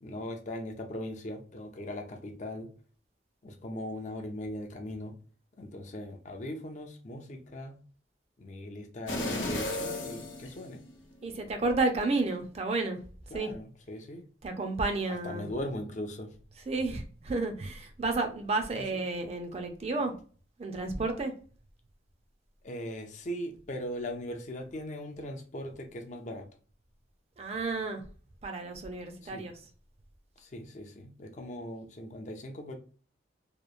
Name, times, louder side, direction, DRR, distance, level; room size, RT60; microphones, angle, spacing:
voice 1, 0.0-2.7 3.4-5.2 5.6-7.8 8.4-10.8 13.3-14.2 15.2-16.3 18.7-19.0 22.6-26.5 29.2-29.5 30.4-32.8, left 1 dB, 40° left, 0.4 m, -39 dB
sound 1, 9.1-11.2 11.7-11.8, left 1 dB, 85° left, 0.8 m, -35 dB
voice 2, 11.2-13.0 13.3-13.5 14.4-15.5 16.7-20.1 20.6-21.4 27.4-28.0 28.4-29.6, right 3 dB, 35° right, 0.4 m, -31 dB
2.9 x 2.0 x 2.4 m
head